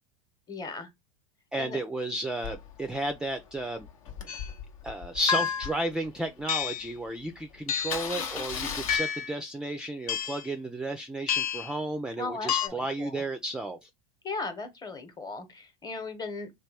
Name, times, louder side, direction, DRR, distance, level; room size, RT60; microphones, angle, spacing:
voice 1, 0.5-0.9 1.6-1.8 12.2-13.2 14.2-16.5, left 3 dB, 20° left, 1.0 m, -37 dB
voice 2, 1.5-3.9 4.8-13.9, right 1 dB, 5° right, 0.3 m, -33 dB
Engine starting, 2.4-6.6 7.1-7.2 7.4-7.5 7.8-9.0, left 7 dB, 70° left, 0.9 m, -38 dB
sound 1, 4.3-4.5 5.3-5.8 6.5-6.9 7.7-8.1 8.9-9.4 10.1-10.5 11.3-11.7 12.5-12.7, left 8 dB, 90° left, 0.5 m, -29 dB
3.1 x 2.3 x 3.3 m
hypercardioid pair, 90°, 18 cm